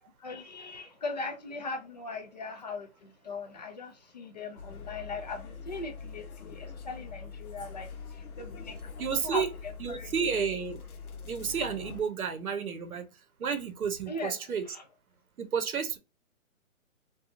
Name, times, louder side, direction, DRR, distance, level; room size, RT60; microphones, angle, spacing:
voice 1, 0.2-8.9 9.2-9.4 9.9-10.1 14.1-14.3 14.7-14.8, left 3 dB, 35° left, 0.4 m, -39 dB
sound 1, 4.6-12.0, left 5 dB, 85° left, 0.7 m, -44 dB
voice 2, 9.0-9.5 9.8-10.8 11.2-13.1 13.4-14.6 15.4-16.0, right 6 dB, 85° right, 0.7 m, -31 dB
2.8 x 2.2 x 2.5 m
hypercardioid pair, 150°, 42 cm